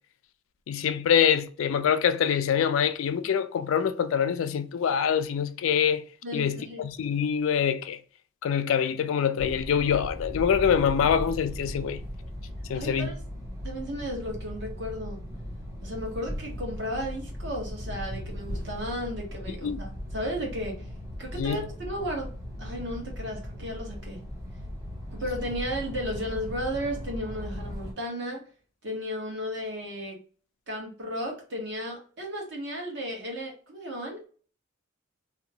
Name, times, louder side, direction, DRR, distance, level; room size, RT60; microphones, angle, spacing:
voice 1, 0.7-6.0 6.3-8.0 8.4-12.0 12.7-13.1 19.6-19.8 21.4-21.7, left 8 dB, 70° left, 0.3 m, -25 dB
voice 2, 6.2-6.9 12.7-13.2 13.6-15.2 15.8-20.7 21.2-22.3 22.6-24.2 25.1-28.4 28.8-30.2 30.7-34.3, equal, 55° right, 1.1 m, -34 dB
sound 1, 9.4-27.9, equal, 15° right, 0.8 m, -38 dB
2.7 x 2.2 x 2.7 m
head